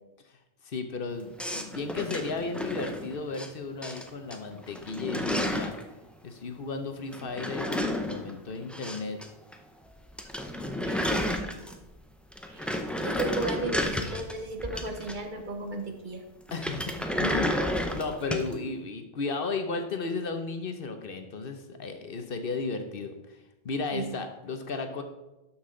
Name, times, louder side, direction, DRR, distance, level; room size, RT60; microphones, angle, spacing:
voice 1, 0.6-5.7 6.2-9.2 16.5-17.6 17.9-23.4 23.6-25.0, left 4 dB, 60° left, 6 dB, 1.0 m, -34 dB
sound 1, 1.4-3.5 3.8-4.4 4.6-5.8 7.1-9.3 9.5-9.6 9.9-10.0 10.2-11.9 12.3-15.4 16.5-18.5, equal, ahead, 0.5 m, -31 dB
voice 2, 10.8-11.4 12.5-16.2 23.9-24.1, right 2 dB, 50° right, 4 dB, 1.1 m, -35 dB
12.0 x 5.8 x 3.8 m, 1.0 s
omnidirectional pair, 1.1 m